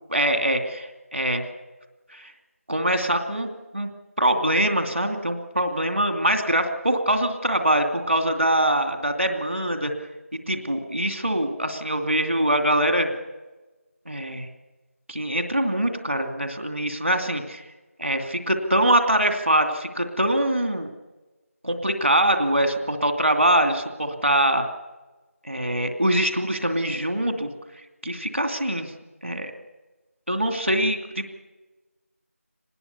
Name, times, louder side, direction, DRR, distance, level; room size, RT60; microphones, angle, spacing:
voice 1, 0.1-1.4 2.1-2.3 2.7-3.5 3.7-3.9 4.2-9.9 10.5-13.1 14.1-14.5 15.1-17.6 18.0-20.9 21.6-24.7 25.4-27.5 28.0-28.9 29.2-29.5 30.3-31.2, right 1 dB, 55° right, 6 dB, 2.6 m, -23 dB
25.5 x 20.0 x 6.9 m, 1.2 s
figure-of-eight pair, 180°, 8 cm